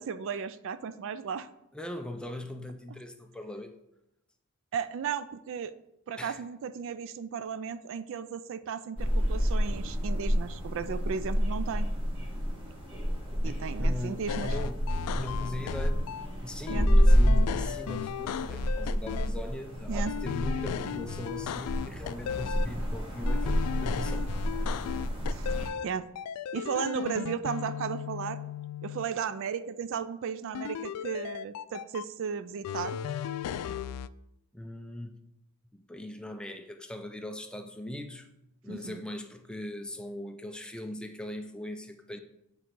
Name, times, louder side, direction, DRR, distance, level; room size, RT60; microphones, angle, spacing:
voice 1, 0.0-1.5 4.7-5.7 6.1-11.9 13.4-14.6 16.7-16.9 19.9-20.1 25.3-25.5 25.8-26.1 26.5-28.4 28.8-33.0 38.7-39.0, right 6 dB, 60° right, 13 dB, 0.3 m, -35 dB
voice 2, 1.7-3.7 6.2-6.4 13.4-16.0 16.4-24.2 34.5-35.2 35.7-38.3 38.6-42.2, left 1 dB, 5° left, 5 dB, 0.5 m, -40 dB
sound 1, 9.0-25.7, equal, 25° right, 1.8 m, -29 dB
sound 2, 14.3-16.3 16.7-19.3 20.1-22.7 23.3-25.9 26.2-29.1 30.5-32.0 32.6-34.1, left 8 dB, 90° left, 0.3 m, -36 dB
8.0 x 3.7 x 4.6 m, 0.84 s
head